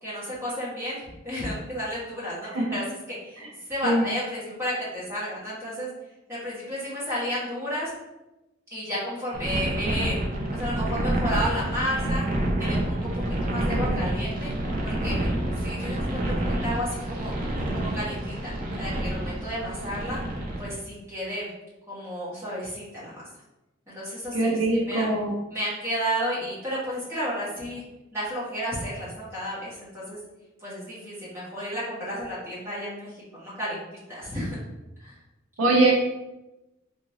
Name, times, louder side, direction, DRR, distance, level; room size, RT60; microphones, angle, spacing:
voice 1, 0.0-5.9 6.3-7.9 8.7-10.2 10.5-12.3 12.6-14.5 14.8-15.3 15.6-16.4 16.6-17.4 17.7-20.2 20.6-21.5 21.9-23.2 23.9-25.1 25.5-27.8 28.1-30.2 30.6-33.7 34.1-34.7 35.0-35.1, equal, 15° right, -9 dB, 1.4 m, -32 dB
sound 1, 9.3-20.7, right 1 dB, 40° right, 0.6 m, -28 dB
voice 2, 24.3-25.3 35.6-35.9, right 2 dB, 85° right, -1 dB, 0.7 m, -22 dB
3.7 x 2.5 x 3.1 m, 0.98 s
head